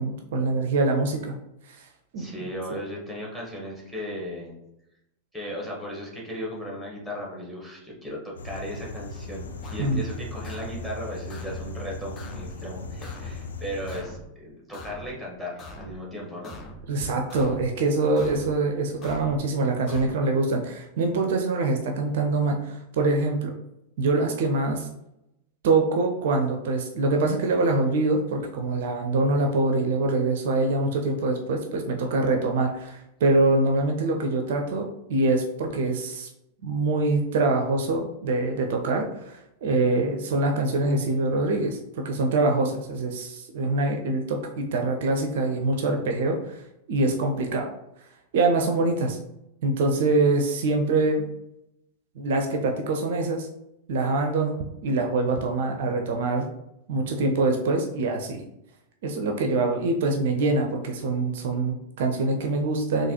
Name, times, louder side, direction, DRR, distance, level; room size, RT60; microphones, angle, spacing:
voice 1, 0.0-1.4 1.7-1.8 2.1-2.5 9.8-10.0 16.9-23.5 24.0-24.9 25.6-36.3 36.6-46.6 46.9-47.7 48.3-49.2 49.6-51.3 52.2-53.5 53.9-56.5 56.9-58.5 59.0-63.1, right 2 dB, 55° right, 3 dB, 0.4 m, -24 dB
voice 2, 2.2-4.5 5.3-16.5, equal, 5° left, -3 dB, 1.3 m, -36 dB
sound 1, 8.4-14.0, left 2 dB, 70° left, 0.3 m, -38 dB
sound 2, 9.6-10.0 10.4-10.9 11.3-11.7 12.2-12.6 13.0-13.4 13.9-14.3 14.7-15.2 15.6-16.0 16.4-16.9 17.3-17.7 18.2-18.6 19.0-19.4 19.9-20.2, left 1 dB, 30° left, 0.6 m, -42 dB
3.8 x 2.6 x 2.9 m, 0.85 s
figure-of-eight pair, 90°, 0 cm